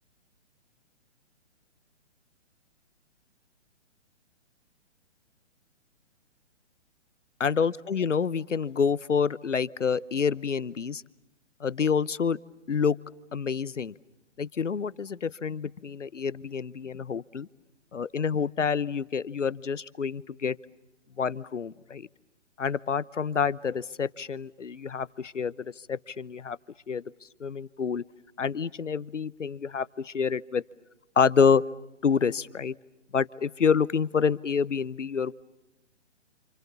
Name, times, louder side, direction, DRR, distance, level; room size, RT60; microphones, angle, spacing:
voice 1, 7.4-11.0 11.6-12.4 12.7-13.0 13.3-13.9 14.4-17.5 17.9-20.6 21.2-22.1 22.6-26.6 26.9-27.0 27.4-28.0 28.4-30.6 31.2-31.6 32.0-32.7 33.1-35.3, left 6 dB, 80° left, 19 dB, 1.0 m, -27 dB
29.0 x 28.0 x 7.0 m, 0.93 s
figure-of-eight pair, 130°, 37 cm